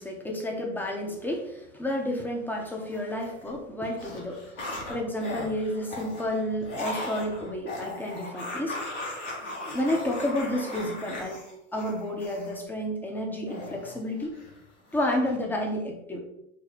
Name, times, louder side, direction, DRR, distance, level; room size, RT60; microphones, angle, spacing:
voice 1, 0.0-4.4 4.9-8.8 9.7-11.5 11.7-14.3 14.9-16.2, left 1 dB, 5° left, 0 dB, 0.7 m, -30 dB
sound 1, 2.9-3.5 3.8-12.5 13.5-14.6 14.9-15.3, left 1 dB, 75° left, 1.5 m, -38 dB
4.6 x 2.1 x 4.0 m, 0.83 s
hypercardioid pair, 95°, 36 cm